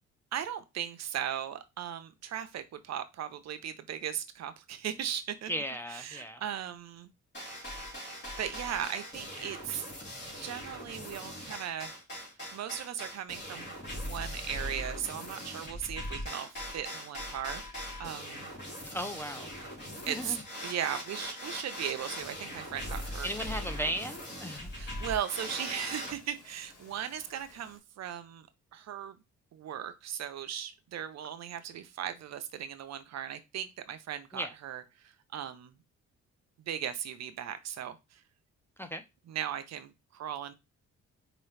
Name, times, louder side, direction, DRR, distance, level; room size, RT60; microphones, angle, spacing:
voice 1, 0.3-5.5 5.9-7.1 8.4-9.8 10.4-11.9 12.5-18.5 20.1-20.4 20.6-23.3 24.7-29.2 29.5-35.8 36.6-38.2 39.3-40.5, right 9 dB, 60° right, 0.7 m, -38 dB
voice 2, 5.5-6.4 18.9-19.7 20.1-20.4 23.2-24.9 34.3-34.5 38.8-39.0, equal, 10° left, 0.5 m, -36 dB
sound 1, 7.3-26.1, equal, 35° left, 2.9 m, -41 dB
Bird vocalization bird call bird song, 21.7-27.8, left 3 dB, 55° left, 2.3 m, -57 dB
4.7 x 3.0 x 3.3 m
cardioid pair, 90°, 30 cm